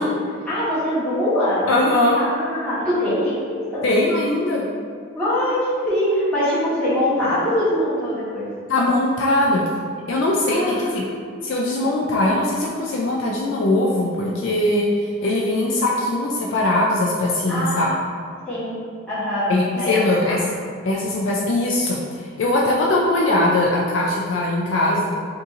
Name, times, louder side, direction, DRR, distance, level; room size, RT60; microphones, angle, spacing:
voice 1, 0.4-3.4 3.7-3.9 5.1-8.5 10.5-11.1 17.5-17.9 18.5-19.5 19.8-20.4, left 1 dB, 5° left, -13 dB, 1.2 m, -23 dB
voice 2, 1.7-2.2 3.8-4.7 8.7-9.6 10.1-11.1 11.4-17.9 19.5-20.4 20.8-25.1, left 1 dB, 65° left, -3 dB, 0.3 m, -21 dB
2.7 x 2.6 x 3.6 m, 2.1 s
head